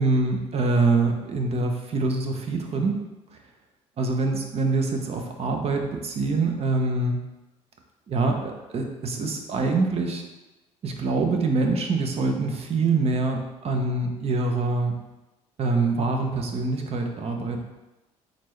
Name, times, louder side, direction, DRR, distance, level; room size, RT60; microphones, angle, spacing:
voice 1, 0.0-3.0 4.0-7.2 8.1-10.3 10.8-15.0 15.6-17.6, right 3 dB, 45° right, 3 dB, 0.7 m, -25 dB
4.1 x 3.2 x 3.2 m, 1.0 s
supercardioid pair, 75°, 15 cm